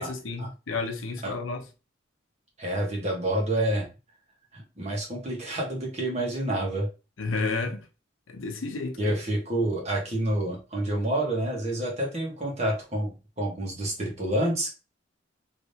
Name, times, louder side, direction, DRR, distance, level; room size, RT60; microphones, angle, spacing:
voice 1, 0.0-1.6 7.2-7.9 8.3-9.2, left 3 dB, 85° left, 0.7 m, -31 dB
voice 2, 2.6-3.9 4.5-6.9 9.0-14.7, right 1 dB, 35° right, 1.3 m, -28 dB
3.4 x 3.0 x 2.7 m
head